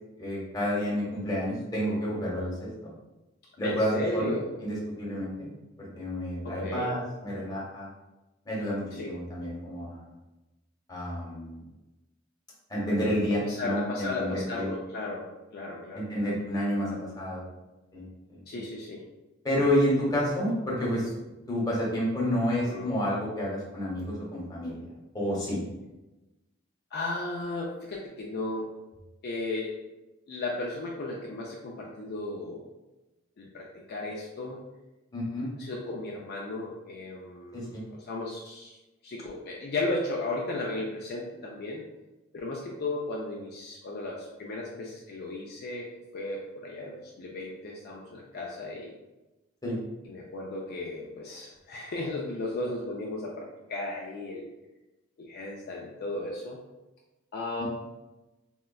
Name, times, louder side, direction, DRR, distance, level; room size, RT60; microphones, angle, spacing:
voice 1, 0.2-2.7 3.6-4.3 4.6-5.5 5.8-7.9 8.5-10.1 10.9-11.6 12.7-14.7 15.9-17.5 17.9-18.6 19.4-21.1 21.5-24.7 25.1-25.6 35.1-35.5 37.5-37.8 49.6-49.8 57.6-57.7, equal, 20° left, -6 dB, 0.8 m, -30 dB
voice 2, 3.6-4.6 6.4-6.9 8.9-9.1 13.5-15.2 15.5-16.3 18.5-19.0 20.1-20.3 22.6-22.9 26.9-28.7 29.2-29.7 30.3-32.7 33.4-34.6 35.6-38.8 39.0-41.8 42.3-45.9 46.1-48.9 50.0-54.5 55.2-56.6 57.3-57.6, left 2 dB, 50° left, -2 dB, 0.4 m, -35 dB
3.7 x 2.1 x 2.2 m, 1.0 s
head